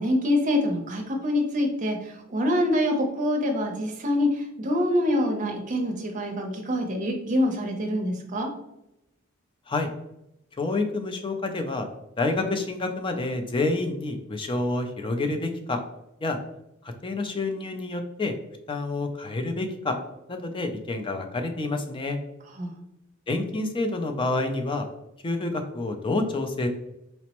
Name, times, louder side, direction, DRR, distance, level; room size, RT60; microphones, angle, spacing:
voice 1, 0.0-8.5 22.6-22.7, left 1 dB, 40° right, 3 dB, 0.6 m, -25 dB
voice 2, 10.6-11.9 12.2-15.8 16.2-16.4 16.8-18.3 18.7-20.0 20.3-22.2 23.3-24.9 25.2-26.7, left 2 dB, 25° left, 6 dB, 0.4 m, -28 dB
4.2 x 2.0 x 2.9 m, 0.85 s
head